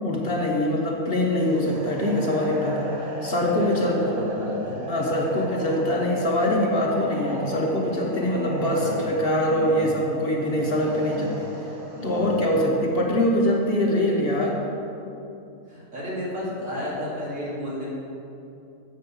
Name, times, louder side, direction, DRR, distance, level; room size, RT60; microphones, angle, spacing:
voice 1, 0.0-2.9 3.2-4.0 4.9-11.5 12.0-14.6, left 1 dB, 45° left, -1 dB, 1.1 m, -23 dB
sound 1, 1.4-12.5, right 1 dB, 90° right, 1.7 m, -36 dB
voice 2, 4.0-4.8 5.2-5.3 8.7-9.0 9.4-9.7 10.4-10.7 11.1-11.2 11.9-12.3 15.7-17.9, left 1 dB, 70° right, -7 dB, 2.7 m, -33 dB
7.6 x 5.5 x 7.0 m, 2.8 s
omnidirectional pair, 1.5 m